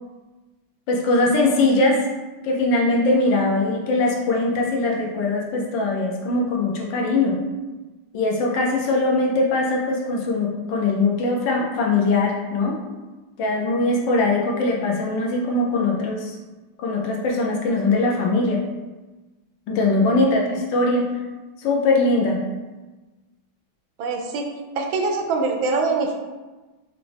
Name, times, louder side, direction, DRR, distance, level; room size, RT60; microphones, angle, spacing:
voice 1, 0.9-2.0 2.4-7.4 8.1-12.8 13.4-16.3 16.8-18.6 19.7-21.1 21.6-22.4, left 2 dB, 75° left, -1 dB, 1.3 m, -21 dB
voice 2, 20.2-20.5 24.0-24.5 24.8-26.1, right 3 dB, 80° right, 3 dB, 1.4 m, -24 dB
5.1 x 2.4 x 3.3 m, 1.2 s
omnidirectional pair, 2.2 m